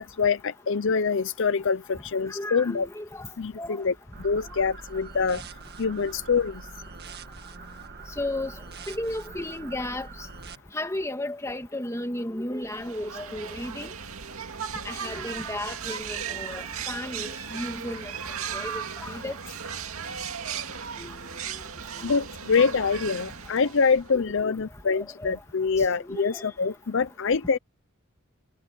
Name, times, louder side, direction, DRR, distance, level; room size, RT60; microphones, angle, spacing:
voice 1, 0.0-2.9 3.4-3.9 4.2-5.4 5.8-6.6 22.0-27.6, left 5 dB, 60° left, 0.6 m, -25 dB
voice 2, 2.3-3.3 3.6-3.8 8.2-8.6 8.9-10.3 10.7-13.9 14.8-18.1 18.5-19.4 21.0-21.2 21.5-21.6 22.0-22.1 23.6-23.7 24.1-24.2 24.6-24.7 24.9-25.4 25.8-26.4, left 1 dB, 15° left, 2.4 m, -34 dB
sound 1, 4.1-10.5, right 4 dB, 50° right, 1.7 m, -43 dB
sound 2, 12.6-24.2, right 7 dB, 85° right, 2.2 m, -36 dB
head